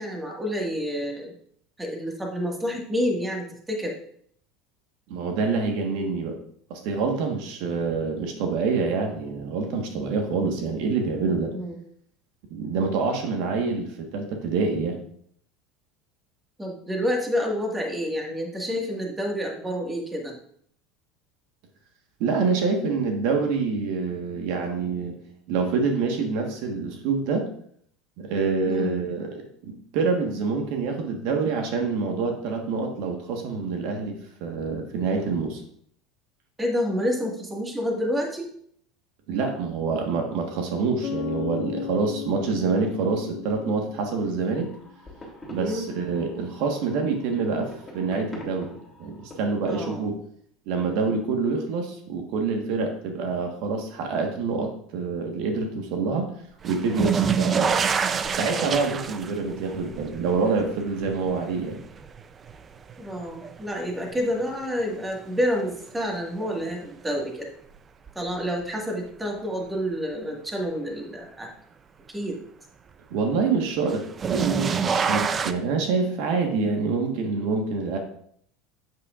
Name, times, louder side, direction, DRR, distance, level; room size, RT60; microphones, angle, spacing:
voice 1, 0.0-1.3 1.8-3.9 11.5-11.8 16.6-20.4 28.7-29.0 36.6-38.5 45.6-45.8 49.7-50.1 63.0-67.5 68.1-71.5 72.1-72.4, equal, 10° right, 0 dB, 1.7 m, -28 dB
voice 2, 5.1-6.4 6.7-11.5 12.5-15.0 22.2-25.1 25.5-27.4 28.2-35.6 39.3-44.7 45.5-50.1 50.7-56.3 56.6-57.8 58.3-61.8 73.1-74.0 74.3-78.0, right 4 dB, 65° right, 3 dB, 1.4 m, -26 dB
Bass guitar, 41.0-44.7, left 10 dB, 55° left, 0.4 m, -36 dB
sound 1, 44.5-49.8, equal, 10° left, 2.9 m, -45 dB
sound 2, 56.6-63.7 64.1-64.8 66.4-66.5 68.1-68.2 73.9-75.5, right 6 dB, 30° right, 0.4 m, -27 dB
8.3 x 7.6 x 2.5 m, 0.64 s
supercardioid pair, 115°, 0 cm